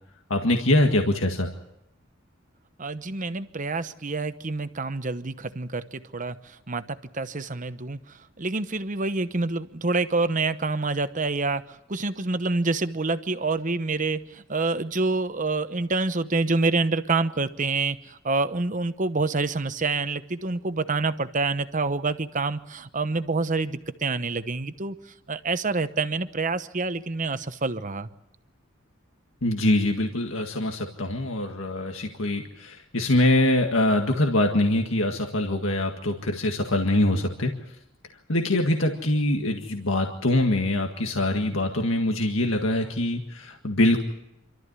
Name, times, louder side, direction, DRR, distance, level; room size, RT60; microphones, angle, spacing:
voice 1, 0.3-1.5 29.4-37.5 38.3-44.0, left 1 dB, 70° left, 3 dB, 1.9 m, -24 dB
voice 2, 2.8-11.6 11.9-25.0 25.3-28.1, right 3 dB, 40° right, 11 dB, 1.0 m, -27 dB
27.0 x 13.5 x 9.6 m, 0.86 s
head